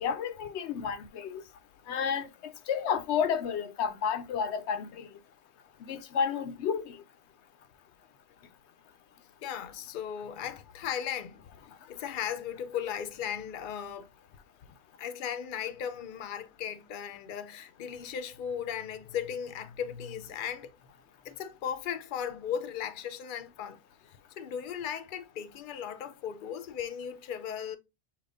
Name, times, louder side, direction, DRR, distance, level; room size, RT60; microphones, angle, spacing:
voice 1, 0.0-1.4 1.9-5.1 5.8-7.0, left 7 dB, 90° left, 0.9 m, -31 dB
voice 2, 9.4-11.4 11.9-14.1 15.0-20.7 21.2-23.8 24.3-27.8, left 8 dB, 55° left, 0.7 m, -36 dB
6.5 x 2.9 x 2.4 m
omnidirectional pair, 1.1 m